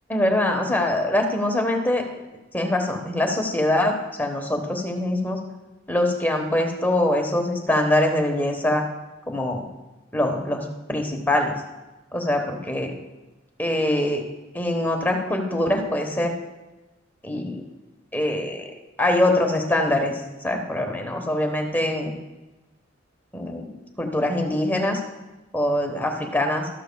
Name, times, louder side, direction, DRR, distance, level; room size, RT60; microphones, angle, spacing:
voice 1, 0.1-2.0 2.5-5.4 5.9-8.8 9.3-9.6 10.1-11.5 12.1-12.9 13.6-14.2 14.5-16.4 17.2-17.6 18.1-18.7 19.0-22.2 23.3-23.7 24.0-25.0 25.5-26.7, left 1 dB, 10° left, 3 dB, 1.1 m, -23 dB
12.5 x 12.5 x 2.3 m, 1.1 s
head